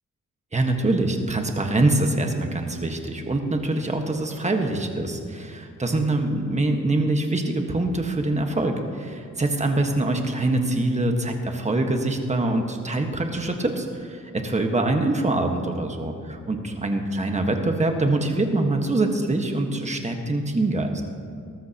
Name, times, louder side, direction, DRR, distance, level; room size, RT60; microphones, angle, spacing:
voice 1, 0.5-21.0, right 2 dB, 20° right, 3 dB, 1.4 m, -24 dB
20.0 x 13.0 x 2.9 m, 2.3 s
cardioid pair, 110°, 31 cm